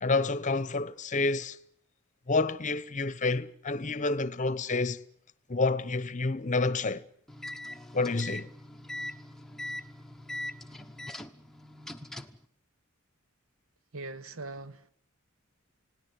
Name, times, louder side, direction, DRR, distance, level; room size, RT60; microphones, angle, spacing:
voice 1, 0.0-1.6 2.3-5.0 5.5-7.0 7.9-8.5, left 3 dB, 35° left, 0.9 m, -29 dB
sound 1, 7.3-12.4, left 1 dB, ahead, 1.0 m, -41 dB
voice 2, 13.9-14.9, right 3 dB, 75° right, 1.3 m, -41 dB
29.5 x 18.0 x 8.3 m
head